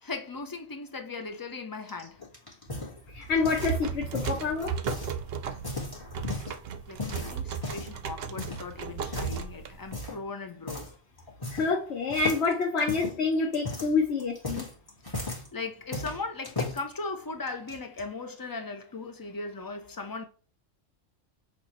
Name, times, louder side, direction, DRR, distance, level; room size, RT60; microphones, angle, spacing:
voice 1, 0.0-2.2 6.9-10.9 15.5-20.2, left 3 dB, 35° left, 0.3 m, -38 dB
sound 1, 1.9-3.8 4.1-5.1 5.5-6.6 7.0-8.0 8.4-8.6 9.1-9.4 9.9-10.2 10.7-10.9 11.2-11.8 12.1-15.5 15.9-16.8 17.5-18.0, left 2 dB, 20° left, 1.3 m, -36 dB
voice 2, 3.1-4.7 11.5-14.7, left 4 dB, 65° left, 1.0 m, -27 dB
sound 2, 3.3-10.1, right 7 dB, 60° right, 0.7 m, -35 dB
5.9 x 2.5 x 2.9 m
omnidirectional pair, 1.3 m